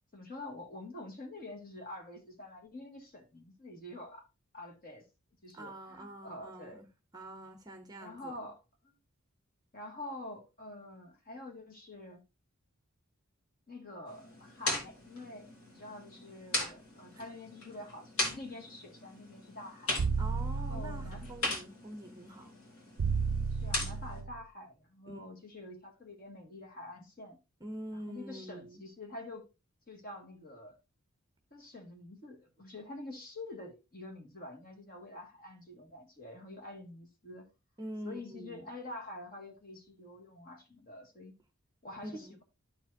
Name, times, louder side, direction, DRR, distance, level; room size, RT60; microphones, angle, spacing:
voice 1, 0.1-4.3 4.5-5.0 5.4-6.9 8.0-8.6 8.8-8.9 9.7-12.2 13.7-20.0 20.5-21.3 23.5-27.4 27.9-29.4 29.9-30.8 31.5-37.5 38.0-41.3 41.8-42.4, left 2 dB, 40° left, 2.0 m, -47 dB
voice 2, 5.5-6.9 7.1-8.3 17.2-17.3 20.2-22.5 25.1-25.2 27.6-28.8 37.8-38.7 42.0-42.3, right 1 dB, 15° right, 0.7 m, -45 dB
sound 1, 14.1-24.2, left 2 dB, 85° left, 2.7 m, -39 dB
sound 2, 20.0-21.4 23.0-24.4, right 4 dB, 70° right, 0.4 m, -33 dB
12.5 x 4.7 x 2.7 m
head